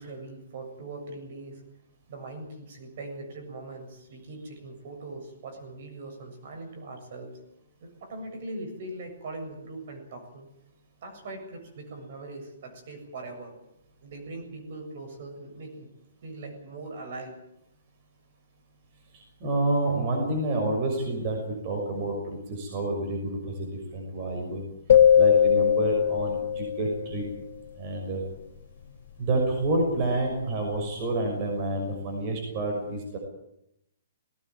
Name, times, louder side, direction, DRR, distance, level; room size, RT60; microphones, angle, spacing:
voice 1, 0.0-1.6 2.1-7.4 7.8-10.5 11.0-13.5 14.0-15.9 16.2-17.4, right 2 dB, 45° right, 4 dB, 7.4 m, -41 dB
voice 2, 19.1-24.6 25.1-27.3 27.8-28.2 29.2-33.2, right 2 dB, 30° right, 1 dB, 6.1 m, -29 dB
sound 1, 24.9-27.2, left 9 dB, 60° left, 1.5 m, -20 dB
19.5 x 18.5 x 9.4 m, 0.79 s
hypercardioid pair, 165°, 0 cm